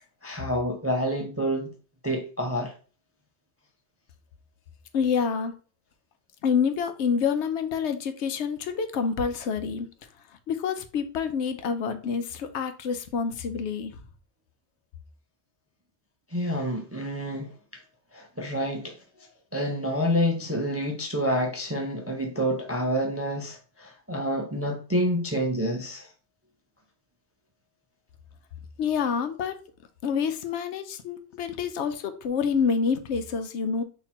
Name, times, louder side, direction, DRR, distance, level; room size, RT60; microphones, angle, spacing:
voice 1, 0.2-1.7 2.0-2.7 16.3-17.8 18.1-19.3 19.5-26.1, equal, 25° right, 0.3 m, -28 dB
voice 2, 4.9-5.5 6.4-9.9 10.5-13.9 28.8-29.6 30.0-33.8, left 6 dB, 85° left, 0.9 m, -27 dB
4.2 x 2.9 x 4.1 m
omnidirectional pair, 1.1 m